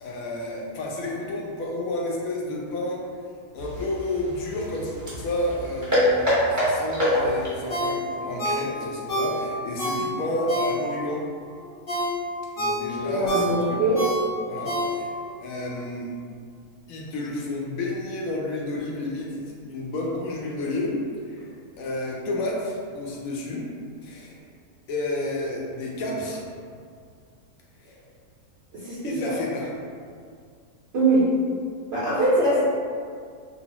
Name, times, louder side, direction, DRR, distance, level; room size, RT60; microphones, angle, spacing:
voice 1, 0.0-3.0 3.5-6.3 6.5-11.3 12.6-14.1 14.5-15.1 15.4-16.1 16.9-21.0 21.3-23.7 24.0-24.4 24.9-26.4 27.8-27.9 29.0-29.7, left 1 dB, 70° left, -3 dB, 0.9 m, -31 dB
sound 1, 3.6-7.6, equal, 20° right, 0.5 m, -25 dB
Ringtone, 7.7-11.1 11.5-15.3 15.7-15.8, equal, 45° left, 0.8 m, -28 dB
voice 2, 13.0-14.0 28.7-29.3 30.9-31.3 31.9-32.6, right 2 dB, 65° right, -10 dB, 0.6 m, -22 dB
2.9 x 2.0 x 2.9 m, 2.2 s
omnidirectional pair, 1.7 m